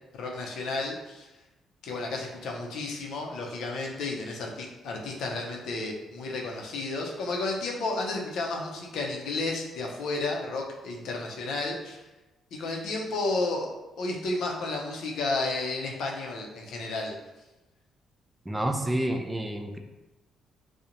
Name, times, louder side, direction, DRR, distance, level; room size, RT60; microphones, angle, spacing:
voice 1, 0.1-1.3 1.8-12.0 12.5-13.7 14.0-17.2, left 2 dB, 75° left, 0 dB, 0.5 m, -32 dB
voice 2, 18.5-19.8, right 1 dB, 10° right, 4 dB, 0.3 m, -29 dB
2.5 x 2.0 x 2.8 m, 1.1 s
cardioid pair, 90°, 0 cm